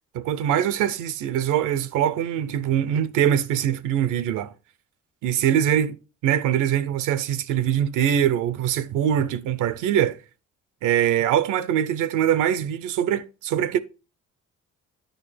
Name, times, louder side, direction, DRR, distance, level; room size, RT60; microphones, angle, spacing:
voice 1, 0.1-4.5 5.2-6.0 6.2-10.2 10.8-13.8, right 10 dB, 90° right, 0.6 m, -23 dB
8.9 x 5.8 x 3.3 m
cardioid pair, 90°, 30 cm